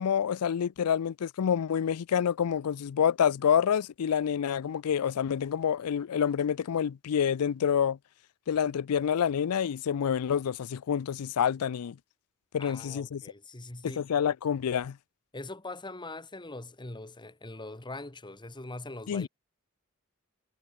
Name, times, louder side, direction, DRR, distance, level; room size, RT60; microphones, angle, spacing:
voice 1, 0.0-8.0 8.5-12.0 12.5-13.2 14.0-15.0 19.1-19.3, left 8 dB, 90° left, 0.4 m, -27 dB
voice 2, 12.6-14.1 15.3-19.3, left 2 dB, 20° left, 1.7 m, -42 dB
head